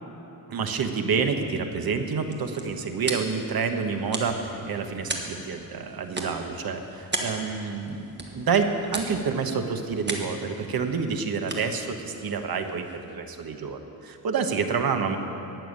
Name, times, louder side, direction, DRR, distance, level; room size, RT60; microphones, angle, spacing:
voice 1, 0.5-15.2, right 5 dB, 75° right, 6 dB, 1.2 m, -28 dB
sound 1, 2.0-13.2, right 2 dB, 30° right, 1.5 m, -38 dB
15.5 x 7.1 x 9.6 m, 3.0 s
wide cardioid pair, 140°, 36 cm